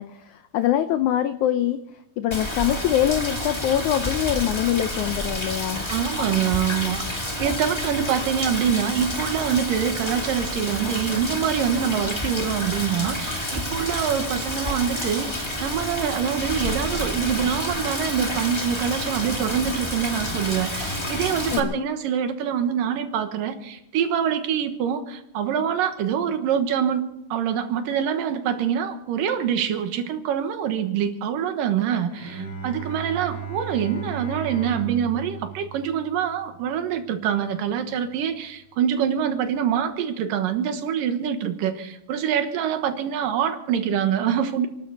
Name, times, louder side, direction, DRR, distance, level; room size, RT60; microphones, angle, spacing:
voice 1, 0.0-1.8 2.2-5.9 21.5-21.7, left 11 dB, 80° left, 10 dB, 1.7 m, -24 dB
Rain, 2.3-21.6, left 1 dB, 20° left, 0.7 m, -29 dB
voice 2, 5.9-27.0 27.3-44.7, right 8 dB, 70° right, 7 dB, 2.9 m, -25 dB
Bowed string instrument, 32.1-37.4, right 6 dB, 40° left, 7.4 m, -36 dB
30.0 x 12.0 x 4.0 m, 0.80 s
omnidirectional pair, 4.2 m